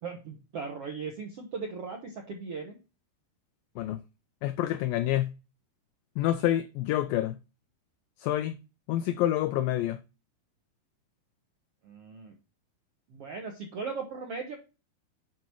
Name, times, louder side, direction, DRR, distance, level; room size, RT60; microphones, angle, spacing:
voice 1, 0.0-2.8 11.8-12.3 13.1-14.5, right 5 dB, 70° right, 1.4 m, -38 dB
voice 2, 4.4-5.3 6.2-7.4 8.2-8.5 8.9-10.0, left 13 dB, 90° left, 2.0 m, -27 dB
9.2 x 5.4 x 4.6 m
omnidirectional pair, 4.6 m